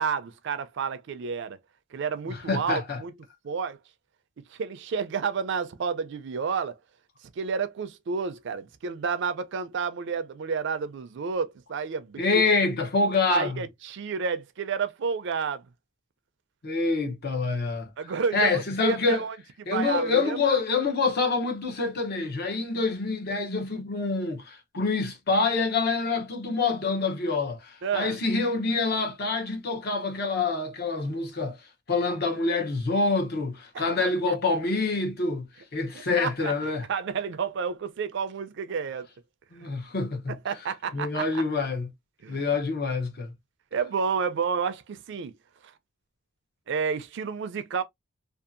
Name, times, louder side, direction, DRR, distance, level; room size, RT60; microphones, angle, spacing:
voice 1, 0.0-1.6 1.9-3.1 3.4-3.8 4.5-6.8 7.4-12.4 13.3-15.7 18.0-19.4 19.7-20.6 27.8-28.2 33.7-34.4 35.9-39.1 39.6-39.7 40.3-41.4 42.2-42.4 43.7-45.3 46.7-47.8, right 6 dB, 60° right, 0.4 m, -30 dB
voice 2, 2.3-3.0 12.2-13.6 16.6-17.9 18.3-19.2 19.7-31.6 31.9-36.9 39.5-40.3 40.9-41.9 42.3-43.3, left 3 dB, 50° left, 0.7 m, -26 dB
2.6 x 2.4 x 2.4 m
head